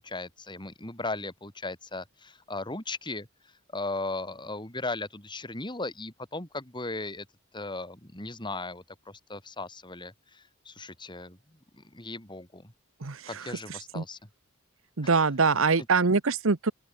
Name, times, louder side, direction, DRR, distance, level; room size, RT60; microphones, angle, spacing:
voice 1, 0.0-3.3 3.7-7.3 7.5-12.7 13.3-14.2, left 2 dB, 20° left, 4.1 m, -37 dB
voice 2, 13.0-14.0 15.0-16.7, right 4 dB, 65° right, 1.1 m, -25 dB
open air
head